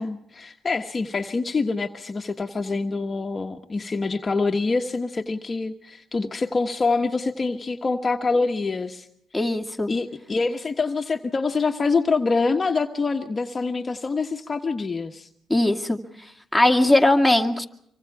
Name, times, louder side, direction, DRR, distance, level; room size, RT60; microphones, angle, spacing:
voice 1, 0.0-9.1 9.9-15.3, left 4 dB, 30° left, 4 dB, 1.4 m, -25 dB
voice 2, 9.3-9.9 15.5-16.0 16.5-17.7, left 1 dB, ahead, 2 dB, 2.3 m, -19 dB
26.5 x 24.5 x 4.8 m, 0.71 s
cardioid pair, 90°, 0 cm